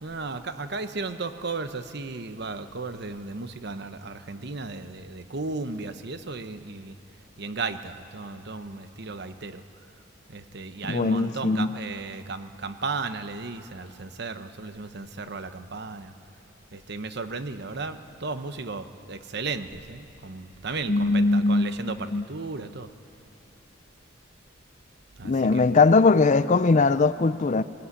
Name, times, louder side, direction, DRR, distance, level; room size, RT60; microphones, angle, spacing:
voice 1, 0.0-7.0 7.4-9.6 10.3-16.1 16.7-22.9 25.2-25.7, right 3 dB, 55° right, 0.9 m, -35 dB
voice 2, 10.8-11.7 20.9-21.7 22.1-22.2 25.2-27.6, left 3 dB, 35° left, 0.5 m, -20 dB
20.0 x 17.5 x 9.8 m
head